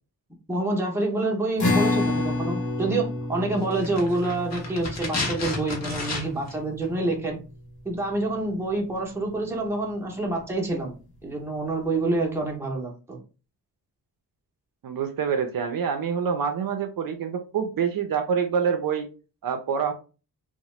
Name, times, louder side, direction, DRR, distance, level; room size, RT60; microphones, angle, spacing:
voice 1, 0.5-7.4 7.8-10.9 11.2-13.2, right 2 dB, 5° right, -1 dB, 0.6 m, -27 dB
sound 1, 1.6-8.2, left 2 dB, 65° left, 1.0 m, -30 dB
sound 2, 3.7-6.6 6.8-6.9, left 3 dB, 45° left, 0.7 m, -32 dB
voice 2, 14.8-19.1 19.4-19.9, right 7 dB, 60° right, 6 dB, 0.5 m, -26 dB
2.8 x 2.1 x 3.0 m, 0.33 s
wide cardioid pair, 180°, 39 cm